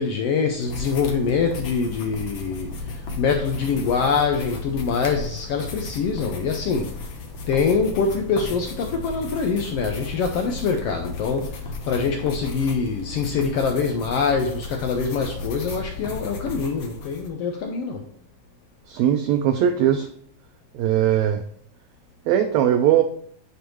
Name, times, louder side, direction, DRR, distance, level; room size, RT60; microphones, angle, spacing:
voice 1, 0.0-6.9 7.5-11.5 11.9-18.0, left 5 dB, 80° left, 1.3 m, -24 dB
sound 1, 0.6-17.3, left 3 dB, 60° left, 1.4 m, -34 dB
voice 2, 18.9-20.1 20.7-21.4 22.3-23.0, right 10 dB, 80° right, 1.7 m, -19 dB
8.9 x 4.6 x 3.1 m
omnidirectional pair, 3.6 m